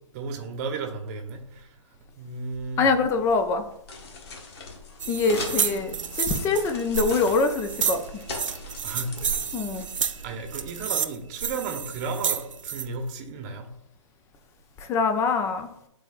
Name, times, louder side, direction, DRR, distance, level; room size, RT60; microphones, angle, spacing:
voice 1, 0.1-1.7 2.2-2.9 6.6-6.7 8.8-9.3 10.2-13.7, right 4 dB, 30° right, 5 dB, 1.1 m, -34 dB
sound 1, 2.5-10.6, left 3 dB, 50° left, 1.4 m, -41 dB
voice 2, 2.8-3.6 5.1-8.0 9.5-9.9 14.9-15.7, left 4 dB, 15° left, 8 dB, 0.6 m, -24 dB
sound 2, 5.0-12.8, right 7 dB, 75° right, 0.5 m, -30 dB
11.5 x 4.0 x 2.5 m, 0.79 s
figure-of-eight pair, 130°, 16 cm